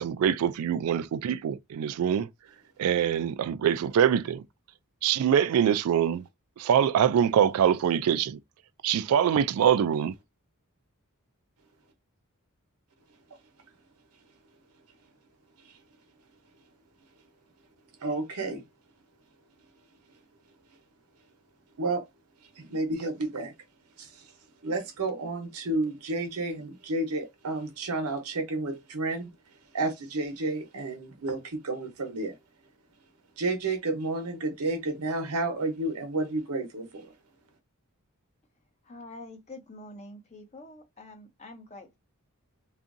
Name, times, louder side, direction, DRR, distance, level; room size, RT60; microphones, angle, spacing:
voice 1, 0.0-2.3 2.8-4.4 5.0-6.3 6.6-8.4 8.8-10.1, right 8 dB, 70° right, 0.3 m, -24 dB
voice 2, 18.0-18.7 21.8-22.1 22.4-23.5 24.0-24.3 24.6-29.3 29.7-32.4 33.4-37.1, right 2 dB, 85° right, 0.9 m, -31 dB
voice 3, 38.8-42.0, left 2 dB, 30° left, 0.6 m, -46 dB
2.7 x 2.5 x 2.5 m
head